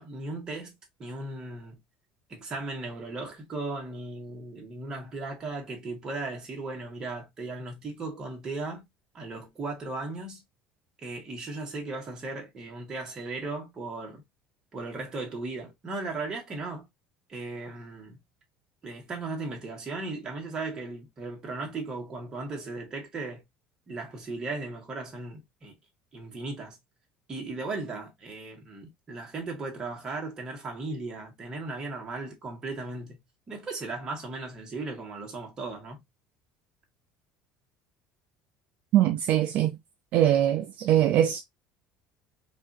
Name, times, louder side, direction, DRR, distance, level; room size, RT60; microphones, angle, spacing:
voice 1, 0.0-1.8 2.3-8.9 9.1-10.4 11.0-14.2 14.7-16.9 17.3-18.2 18.8-23.4 23.9-25.7 26.1-26.8 27.3-36.0, right 3 dB, 20° right, 1.4 m, -37 dB
voice 2, 38.9-39.8 40.1-41.4, right 11 dB, 45° right, 0.4 m, -22 dB
4.7 x 2.5 x 2.6 m
cardioid pair, 165°, 3 cm